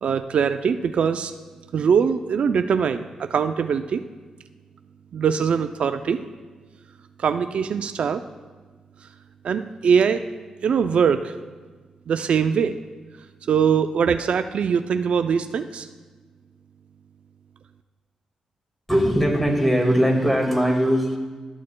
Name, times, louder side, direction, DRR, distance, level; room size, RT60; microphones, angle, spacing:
voice 1, 0.0-1.3 1.7-4.0 5.1-6.2 7.2-8.2 9.4-10.2 10.6-11.3 12.1-12.8 13.5-15.9, right 6 dB, 70° right, 9 dB, 0.3 m, -22 dB
voice 2, 18.9-21.2, equal, 5° left, 1 dB, 1.9 m, -20 dB
13.0 x 6.3 x 2.2 m, 1.4 s
cardioid pair, 55°, 2 cm